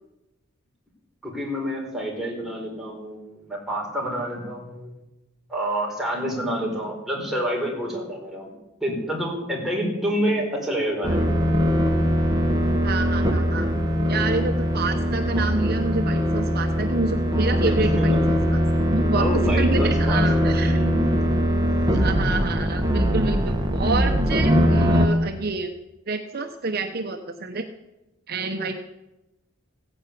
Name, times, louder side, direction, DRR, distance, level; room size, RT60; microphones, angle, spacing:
voice 1, 1.2-5.0 5.5-8.5 8.8-11.3 17.8-18.2 19.1-21.3 21.6-22.1, equal, ahead, -2 dB, 4.7 m, -28 dB
sound 1, 11.0-25.1, equal, 20° right, 1.8 m, -21 dB
voice 2, 12.8-13.7 14.1-18.1 18.5-18.6 18.9-19.3 19.6-20.8 22.0-25.7 26.1-27.6 28.3-28.8, right 3 dB, 50° right, 5 dB, 1.0 m, -28 dB
16.0 x 10.5 x 8.5 m, 0.97 s
head